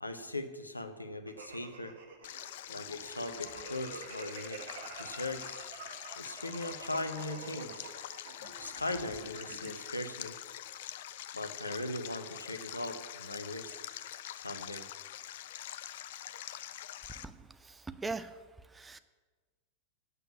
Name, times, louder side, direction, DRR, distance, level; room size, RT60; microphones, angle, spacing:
voice 1, 0.0-1.9 2.7-4.6 5.0-5.7 6.2-7.9 8.6-10.4 11.3-13.8 14.4-14.9, left 2 dB, 85° left, 8 dB, 0.8 m, -39 dB
sound 1, 1.3-9.9, right 5 dB, 55° right, 1.4 m, -48 dB
Stream, 2.2-17.2, left 12 dB, 55° left, 0.4 m, -45 dB
voice 2, 17.2-18.4 18.7-19.0, right 3 dB, 10° right, 12 dB, 0.5 m, -41 dB
8.2 x 6.8 x 8.3 m, 1.4 s
figure-of-eight pair, 90°, 0 cm